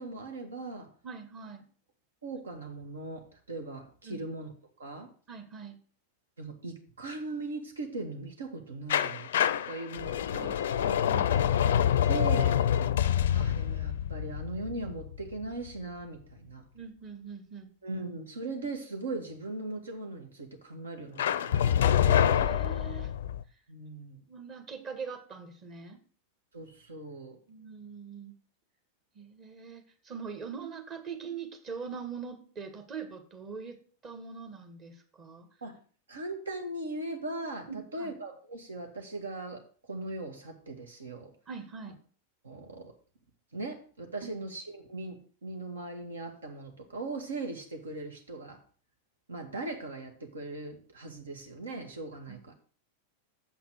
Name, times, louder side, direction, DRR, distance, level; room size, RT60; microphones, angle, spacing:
voice 1, 0.0-0.9 2.2-4.5 4.8-5.1 6.4-9.3 9.7-10.7 11.7-11.8 12.1-12.6 13.3-16.6 17.8-21.9 23.7-24.2 26.5-27.4 35.6-35.8 36.1-41.3 42.4-42.9 43.5-48.6 49.3-52.5, right 2 dB, 70° right, 4 dB, 1.9 m, -39 dB
voice 2, 1.0-1.6 4.0-4.2 5.3-5.8 10.3-10.5 10.8-11.6 16.7-17.7 22.0-23.1 24.3-26.0 27.5-28.3 29.1-33.8 34.0-35.5 37.7-38.1 41.5-42.0 44.2-44.3 52.3-52.4, right 6 dB, 30° right, 5 dB, 1.8 m, -42 dB
sound 1, 8.9-15.7 21.2-23.4, left 10 dB, 60° left, 0.5 m, -26 dB
7.7 x 5.8 x 6.5 m, 0.43 s
figure-of-eight pair, 90°, 0 cm